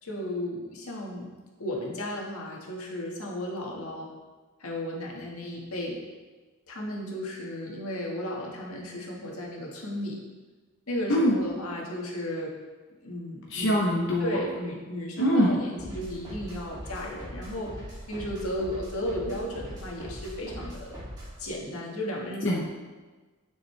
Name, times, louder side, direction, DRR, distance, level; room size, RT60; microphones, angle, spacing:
voice 1, 0.0-1.3 1.6-4.1 4.6-6.0 6.7-10.2 10.9-12.5 13.0-13.8 14.2-17.8 18.1-21.0 21.4-22.6, left 1 dB, 90° left, -2 dB, 1.8 m, -34 dB
voice 2, 13.5-14.4 15.2-15.6 22.4-22.6, equal, 55° left, -3 dB, 1.0 m, -23 dB
sound 1, 15.8-21.4, equal, 20° right, 2.8 m, -41 dB
10.0 x 6.6 x 3.4 m, 1.3 s
head